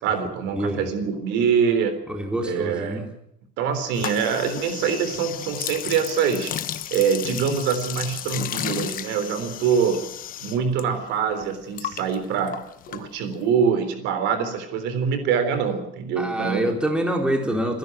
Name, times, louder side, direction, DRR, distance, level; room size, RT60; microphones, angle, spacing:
voice 1, 0.0-2.0 2.4-3.0 3.6-6.5 6.9-10.1 10.4-12.6 12.9-16.7, right 6 dB, 75° right, 9 dB, 3.7 m, -24 dB
voice 2, 0.5-0.9 2.1-3.1 16.2-17.8, right 1 dB, 5° right, 2 dB, 4.1 m, -26 dB
sound 1, 3.9-10.8 11.1-13.5, left 11 dB, 50° left, 1.3 m, -33 dB
26.5 x 11.0 x 9.2 m, 0.77 s
cardioid pair, 120°, 18 cm